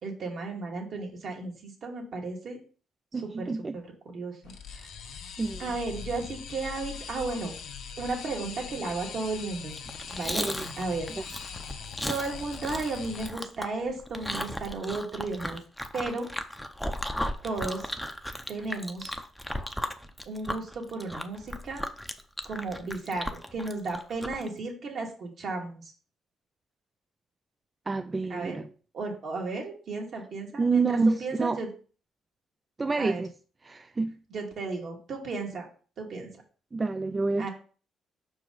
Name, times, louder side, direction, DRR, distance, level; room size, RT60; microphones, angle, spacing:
voice 1, 0.0-2.6 3.1-4.4 4.7-4.8 5.6-7.5 8.0-9.7 10.1-11.1 12.1-15.6 15.9-16.3 17.4-17.9 18.5-19.1 20.3-21.8 22.4-25.9 28.3-28.6 28.9-31.7 32.9-33.2 34.3-35.7 36.0-36.3 37.4-37.5, right 3 dB, 60° right, 2.0 m, -34 dB
voice 2, 3.1-3.8 5.4-5.6 10.3-10.6 27.9-28.7 30.6-31.6 32.8-33.3 33.6-34.1 36.7-37.5, right 3 dB, 25° right, 0.3 m, -28 dB
sound 1, 4.4-13.3, left 6 dB, 75° left, 1.0 m, -41 dB
Chewing mastication, 9.7-24.5, equal, 5° left, 0.6 m, -36 dB
5.4 x 4.7 x 3.9 m
cardioid pair, 90°, 0 cm